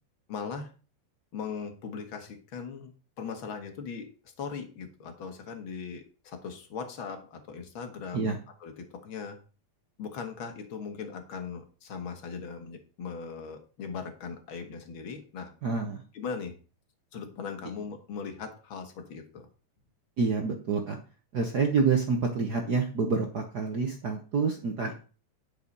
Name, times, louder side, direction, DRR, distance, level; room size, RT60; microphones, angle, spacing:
voice 1, 0.3-0.7 1.3-2.9 3.2-4.1 4.4-8.4 8.6-9.4 10.0-15.5 16.1-16.5 17.1-19.5, left 6 dB, 50° left, 5 dB, 2.1 m, -39 dB
voice 2, 15.6-16.0 20.2-21.0 21.3-24.9, right 5 dB, 65° right, 3 dB, 1.0 m, -27 dB
10.5 x 5.8 x 5.4 m, 0.37 s
omnidirectional pair, 3.4 m